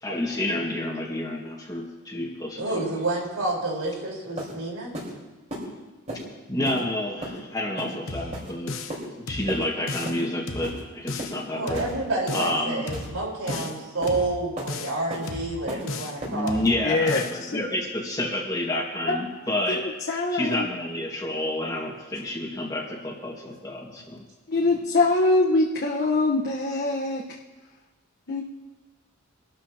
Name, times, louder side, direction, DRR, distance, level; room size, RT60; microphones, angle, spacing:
voice 1, 0.0-2.9 6.5-8.8 9.0-11.9 12.3-12.8 16.3-19.9 20.3-24.3, left 1 dB, 20° left, -1 dB, 2.0 m, -29 dB
voice 2, 2.6-4.9 11.5-16.6, right 2 dB, 85° right, -2 dB, 4.7 m, -29 dB
sound 1, 3.9-4.0 4.4-4.5 4.9-5.1 5.5-5.6 6.1-6.2 6.6-6.8 7.2-7.4 7.8-7.9 8.3-8.5 8.9-9.0 9.5-9.6 10.0-10.2 10.6-10.8 11.2-11.4 11.7-11.9 12.3-12.5 12.9-13.1 13.5-13.6 14.0-14.2 14.6-14.7 15.1-15.3 15.7-15.8 16.2-16.3, right 1 dB, 35° right, 4.6 m, -34 dB
sound 2, 8.1-9.0 9.3-10.2 10.5-11.4 11.7-12.6 12.9-13.8 14.1-15.0 15.3-16.2 16.5-17.4, left 3 dB, 70° left, 1.0 m, -35 dB
voice 3, 16.8-17.6 19.1-19.2 19.7-20.7 24.5-27.3 28.3-28.4, left 2 dB, 50° left, -3 dB, 1.3 m, -23 dB
24.5 x 13.0 x 3.0 m, 1.2 s
head